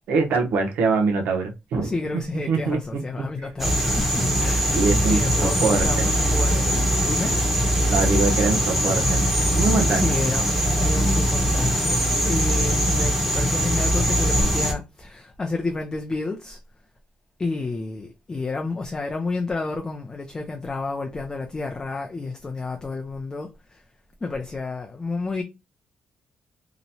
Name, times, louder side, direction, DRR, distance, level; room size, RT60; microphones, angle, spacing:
voice 1, 0.1-1.9 2.5-2.8 4.7-6.1 7.9-9.2 9.5-10.1, right 4 dB, 85° right, 0.7 m, -23 dB
voice 2, 1.8-7.4 9.9-10.5 10.8-16.6 17.4-23.8 24.2-25.4, left 3 dB, 25° left, 0.4 m, -30 dB
sound 1, 3.6-14.7, equal, 5° right, 0.9 m, -21 dB
2.9 x 2.1 x 2.7 m
cardioid pair, 115°, 3 cm